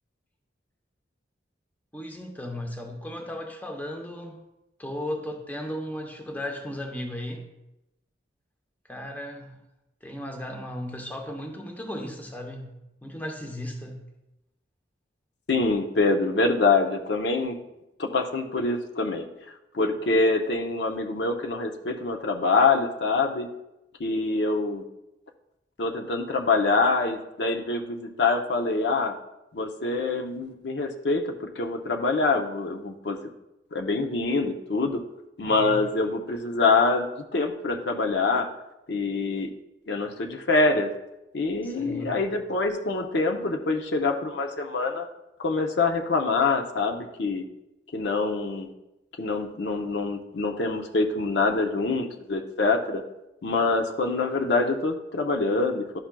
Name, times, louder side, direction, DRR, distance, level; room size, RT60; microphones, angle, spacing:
voice 1, 1.9-4.4 4.8-7.4 8.9-9.6 10.0-12.7 13.0-14.0 35.4-35.8 41.6-42.1, left 1 dB, 10° left, 3 dB, 0.7 m, -35 dB
voice 2, 15.5-17.6 18.0-19.2 19.7-23.5 24.0-24.8 25.8-29.1 29.5-33.2 33.7-35.0 35.4-37.1 37.3-38.5 38.9-39.5 39.9-40.9 41.3-45.1 45.4-47.4 47.9-48.7 49.2-53.0 53.4-55.8, left 3 dB, 65° left, 4 dB, 0.6 m, -25 dB
11.5 x 5.8 x 2.2 m, 0.93 s
head